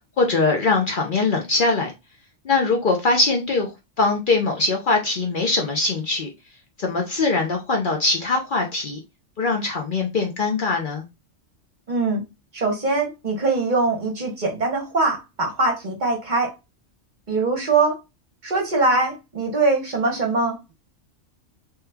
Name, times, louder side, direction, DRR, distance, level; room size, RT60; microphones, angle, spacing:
voice 1, 0.2-1.9 2.4-3.7 4.0-6.3 6.8-9.0 9.4-11.0, left 3 dB, 50° left, 0.7 m, -22 dB
voice 2, 11.9-12.2 12.5-16.5 17.3-18.0 18.4-20.7, right 3 dB, 45° right, 0.9 m, -22 dB
3.1 x 2.3 x 3.3 m
omnidirectional pair, 1.2 m